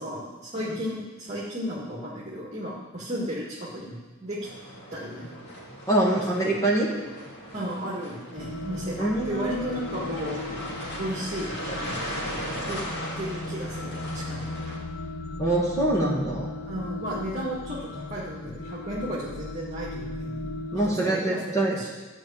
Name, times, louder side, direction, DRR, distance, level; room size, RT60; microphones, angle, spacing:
voice 1, 0.0-4.4 4.9-5.3 6.0-6.1 6.4-6.5 7.5-10.4 11.0-12.0 12.7-12.8 13.2-14.5 16.6-20.5 20.9-21.4 21.7-21.9, equal, 30° right, -6 dB, 1.9 m, -34 dB
sound 1, 4.4-14.8, equal, 55° left, 3.1 m, -38 dB
voice 2, 5.9-6.9 9.0-9.5 15.4-16.5 20.7-21.7, right 1 dB, 15° left, -4 dB, 2.0 m, -24 dB
sound 2, 8.4-20.9, left 2 dB, 80° left, 1.0 m, -37 dB
13.0 x 5.2 x 8.6 m, 1.3 s
head